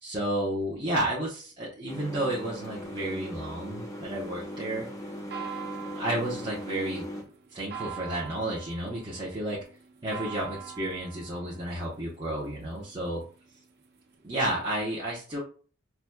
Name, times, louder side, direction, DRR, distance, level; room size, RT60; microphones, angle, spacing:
voice 1, 0.0-4.9 5.9-7.0 7.5-9.6 10.0-13.2 14.2-15.4, right 1 dB, 20° right, -7 dB, 0.8 m, -31 dB
sound 1, 1.9-7.2, equal, 15° left, 0.5 m, -39 dB
sound 2, 4.1-14.3, right 8 dB, 55° right, 0.5 m, -45 dB
5.8 x 2.3 x 2.2 m, 0.40 s
head